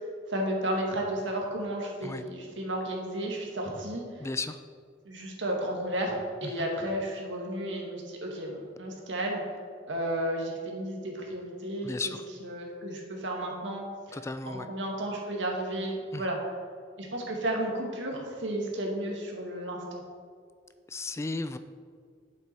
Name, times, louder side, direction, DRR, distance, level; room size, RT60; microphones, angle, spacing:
voice 1, 0.3-4.3 5.0-9.4 9.9-12.1 12.4-14.2 14.5-16.4 17.0-20.0, right 1 dB, 80° right, -1 dB, 2.0 m, -33 dB
voice 2, 4.2-4.6 6.4-6.7 11.8-12.2 14.1-14.7 16.1-16.3 20.9-21.6, left 3 dB, 15° left, 10 dB, 0.3 m, -34 dB
8.8 x 7.6 x 4.6 m, 2.1 s
head